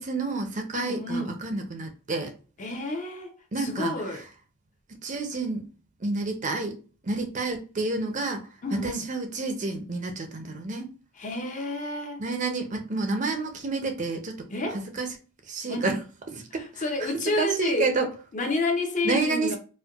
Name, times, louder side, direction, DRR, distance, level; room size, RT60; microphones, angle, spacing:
voice 1, 0.0-2.3 3.5-3.9 5.0-5.6 6.0-6.8 7.0-8.4 8.7-10.9 12.2-14.4 14.7-15.1 15.5-16.0 16.3-16.8 17.3-18.1 19.0-19.6, right 3 dB, 35° right, 0.5 m, -29 dB
voice 2, 0.7-1.4 2.6-4.2 8.6-9.1 11.2-12.2 14.5-14.8 15.7-15.9 16.5-17.9 18.3-19.6, left 2 dB, 35° left, 0.6 m, -30 dB
4.3 x 2.2 x 2.3 m
head